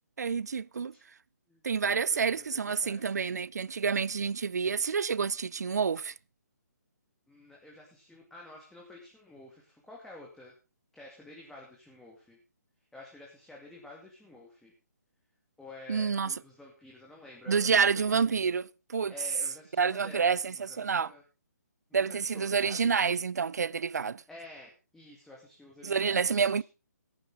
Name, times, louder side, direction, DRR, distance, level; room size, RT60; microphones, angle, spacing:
voice 1, 0.2-0.9 1.6-6.1 15.9-16.3 17.5-19.1 19.8-21.1 21.9-24.2 25.8-26.6, right 6 dB, 70° right, 0.5 m, -28 dB
voice 2, 1.5-3.5 7.3-10.6 10.9-12.4 12.9-14.7 15.6-18.6 19.1-21.2 21.9-22.9 24.3-26.6, left 2 dB, 5° left, 2.5 m, -51 dB
14.5 x 11.5 x 3.8 m
figure-of-eight pair, 145°, 9 cm